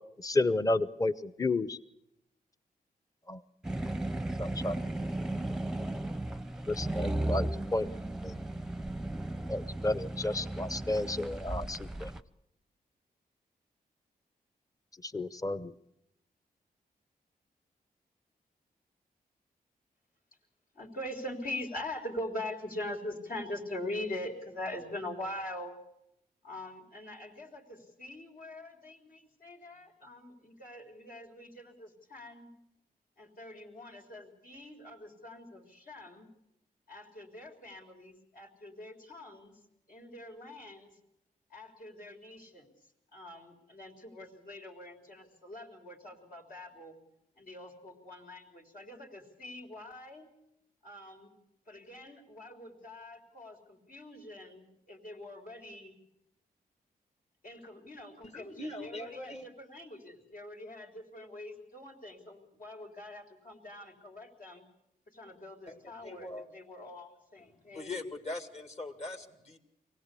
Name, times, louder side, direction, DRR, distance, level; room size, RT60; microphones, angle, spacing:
voice 1, 0.2-1.8 3.3-3.4 4.4-4.7 6.7-7.9 8.2-8.4 9.5-12.1 15.0-15.7, left 2 dB, 20° left, 15 dB, 0.8 m, -31 dB
sound 1, 3.6-12.2, right 1 dB, 5° right, 0.7 m, -35 dB
voice 2, 20.7-25.7 26.4-32.5 33.2-36.3 36.9-39.6 39.9-40.9 41.5-42.7 43.1-47.0 47.4-50.3 50.8-51.4 51.7-56.0 57.4-64.6 65.1-68.0, left 1 dB, 70° left, 2 dB, 4.0 m, -43 dB
voice 3, 58.2-59.5 65.7-66.5 67.7-69.6, left 2 dB, 45° left, 6 dB, 2.3 m, -41 dB
23.5 x 17.0 x 8.4 m, 0.82 s
wide cardioid pair, 95°, 16 cm